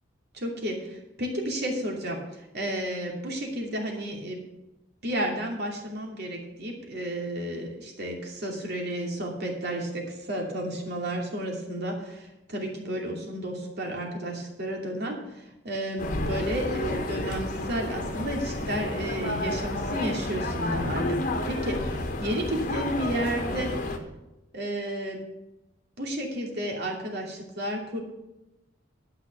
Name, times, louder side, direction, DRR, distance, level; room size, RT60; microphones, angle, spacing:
voice 1, 0.3-4.4 5.0-21.2 21.5-21.8 22.2-23.7 24.5-25.2 26.0-28.0, equal, 60° right, 1 dB, 2.7 m, -32 dB
sound 1, 16.0-24.0, left 1 dB, 45° left, 1.3 m, -31 dB
12.0 x 5.8 x 7.0 m, 0.96 s
head